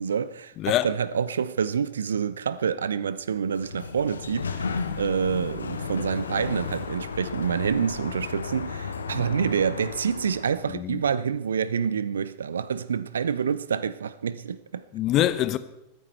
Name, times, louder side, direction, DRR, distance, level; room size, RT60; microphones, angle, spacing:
voice 1, 0.0-14.8, right 7 dB, 70° right, 0.6 m, -27 dB
voice 2, 0.6-1.0 9.2-9.3 10.7-11.0 14.9-15.6, left 13 dB, 35° left, 0.9 m, -25 dB
Sliding door, 3.3-10.7, left 5 dB, 75° left, 1.1 m, -34 dB
21.5 x 9.8 x 4.5 m
figure-of-eight pair, 90°, 0 cm